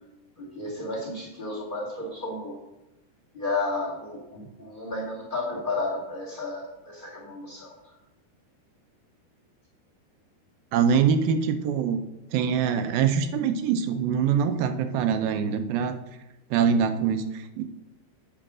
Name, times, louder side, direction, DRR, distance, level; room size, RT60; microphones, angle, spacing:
voice 1, 0.4-2.6 3.3-7.7, left 2 dB, 25° left, -3 dB, 1.1 m, -32 dB
voice 2, 10.7-12.0 12.3-16.0 16.5-17.6, right 7 dB, 80° right, 9 dB, 2.4 m, -24 dB
8.9 x 5.1 x 6.1 m, 0.97 s
omnidirectional pair, 4.6 m